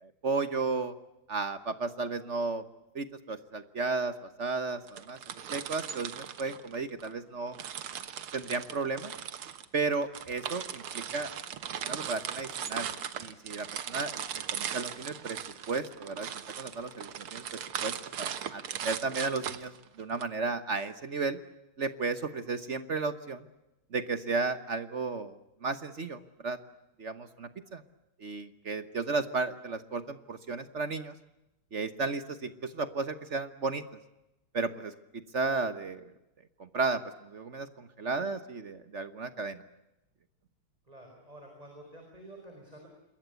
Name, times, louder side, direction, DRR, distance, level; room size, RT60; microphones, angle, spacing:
voice 1, 0.0-0.9 1.3-2.6 2.9-5.2 5.5-7.6 8.3-9.1 9.7-11.3 11.8-12.9 13.2-15.4 15.7-16.3 16.6-21.4 21.8-23.5 23.9-26.6 27.0-27.8 28.2-31.1 31.7-33.8 34.5-36.1 36.6-39.6, right 4 dB, 40° right, 12 dB, 1.1 m, -34 dB
sound 1, 4.9-7.1 7.5-20.2, right 9 dB, 80° right, 2.2 m, -38 dB
voice 2, 40.9-42.9, right 1 dB, 15° right, 2 dB, 5.2 m, -50 dB
27.0 x 22.0 x 8.2 m, 0.95 s
omnidirectional pair, 2.4 m